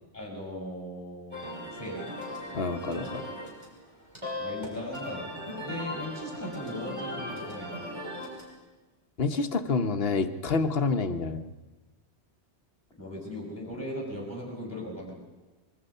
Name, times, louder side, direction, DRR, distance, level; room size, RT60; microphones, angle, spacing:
voice 1, 0.1-2.1 2.9-3.2 4.4-7.9 13.0-15.2, left 1 dB, 15° left, -1 dB, 5.1 m, -38 dB
sound 1, 1.3-8.5, left 1 dB, 25° right, 6.0 m, -38 dB
voice 2, 2.5-3.3 9.2-11.5, left 4 dB, 60° left, 8 dB, 1.2 m, -28 dB
25.0 x 22.0 x 5.5 m, 1.2 s
omnidirectional pair, 1.1 m